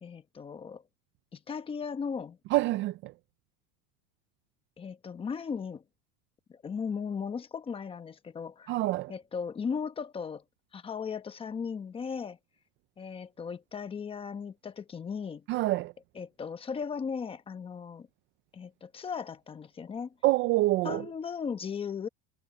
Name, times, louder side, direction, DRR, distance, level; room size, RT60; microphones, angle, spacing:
voice 1, 0.0-0.8 1.3-2.4 4.8-5.8 6.5-8.8 9.1-10.4 10.7-12.4 13.0-15.4 16.1-18.1 18.5-20.1 20.8-22.1, left 6 dB, 15° left, 1.0 m, -37 dB
voice 2, 2.5-3.1 8.7-9.1 15.5-15.9 20.2-21.1, right 18 dB, 35° right, 0.4 m, -26 dB
cardioid pair, 160°, 33 cm